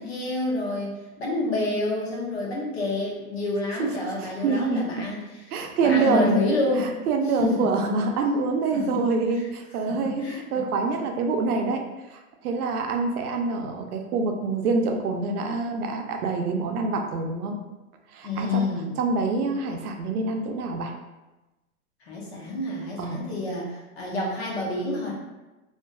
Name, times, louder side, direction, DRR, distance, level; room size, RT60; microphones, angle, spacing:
voice 1, 0.0-5.2 5.8-6.9 7.4-7.7 8.7-9.0 9.9-10.8 18.2-18.9 22.0-25.1, left 2 dB, 45° left, -3 dB, 0.6 m, -28 dB
voice 2, 4.2-5.1 5.5-6.4 6.8-17.6 18.1-18.7 19.0-20.9 23.0-23.2, right 3 dB, 85° right, 4 dB, 0.6 m, -26 dB
2.5 x 2.3 x 2.2 m, 1.1 s
hypercardioid pair, 170°, 44 cm